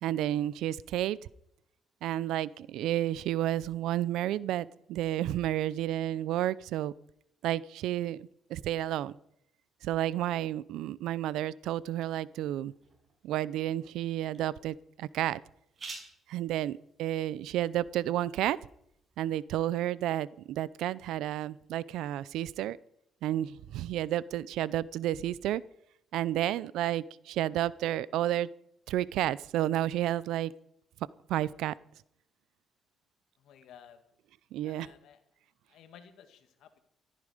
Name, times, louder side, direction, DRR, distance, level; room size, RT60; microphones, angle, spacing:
voice 1, 0.0-1.2 2.0-6.9 7.4-9.2 9.8-12.7 13.2-15.4 16.3-18.6 19.2-22.8 23.2-25.6 26.1-28.5 28.9-30.5 31.3-31.7 34.5-34.9, right 13 dB, 90° right, 20 dB, 0.5 m, -31 dB
sound 1, 11.7-19.3, right 3 dB, 40° right, 6.1 m, -53 dB
voice 2, 33.4-34.0 34.6-35.2 35.7-36.8, left 8 dB, 80° left, 8 dB, 2.1 m, -55 dB
14.5 x 13.5 x 5.0 m, 0.75 s
cardioid pair, 90°, 0 cm